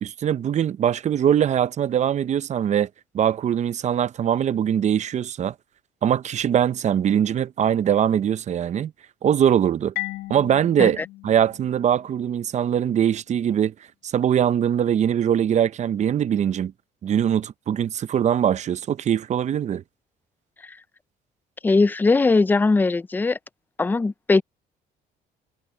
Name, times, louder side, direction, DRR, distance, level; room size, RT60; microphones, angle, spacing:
voice 1, 0.0-2.9 3.1-5.5 6.0-8.9 9.2-9.9 10.3-13.7 14.0-16.7 17.0-19.8, right 9 dB, 45° right, 0.7 m, -22 dB
Marimba xylophone, 10.0-12.6, left 19 dB, 60° left, 2.0 m, -36 dB
voice 2, 21.6-23.4 23.8-24.4, left 3 dB, 10° left, 0.4 m, -19 dB
cardioid pair, 110°, 17 cm